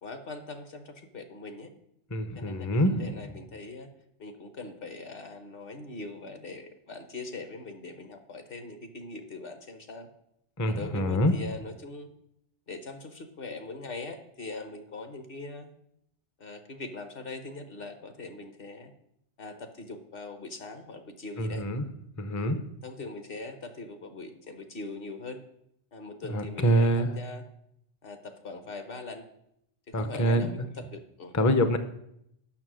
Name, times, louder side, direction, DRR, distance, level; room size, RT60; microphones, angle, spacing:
voice 1, 0.0-1.7 2.4-3.9 4.2-10.1 10.7-12.1 12.7-15.7 16.4-18.9 19.4-21.6 22.4-22.5 22.8-25.4 25.9-27.4 28.0-29.2 29.9-31.3, left 3 dB, 55° left, 7 dB, 1.0 m, -41 dB
voice 2, 2.1-3.2 10.6-11.3 21.4-21.8 22.2-22.6 26.3-27.2 29.9-30.7 31.3-31.8, equal, 25° left, 9 dB, 0.4 m, -25 dB
7.3 x 6.2 x 6.2 m, 0.77 s
omnidirectional pair, 1.2 m